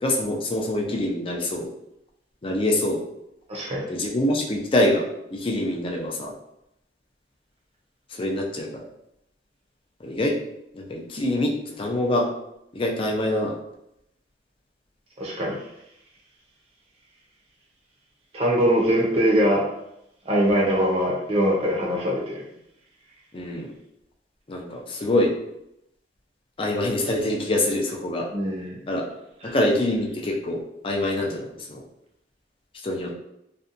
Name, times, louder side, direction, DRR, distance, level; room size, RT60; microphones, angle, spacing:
voice 1, 0.0-1.6 2.4-3.0 3.9-6.3 8.1-8.8 10.0-10.4 10.7-12.3 12.7-13.5 23.3-23.7 24.5-25.3 26.6-28.3 28.9-29.0 29.4-31.8 32.8-33.1, left 1 dB, 30° left, 0 dB, 0.4 m, -25 dB
voice 2, 3.5-3.9 15.2-15.6 18.3-19.6 20.3-22.4 28.3-28.8, equal, 35° right, -3 dB, 0.6 m, -22 dB
2.6 x 2.2 x 2.5 m, 0.82 s
head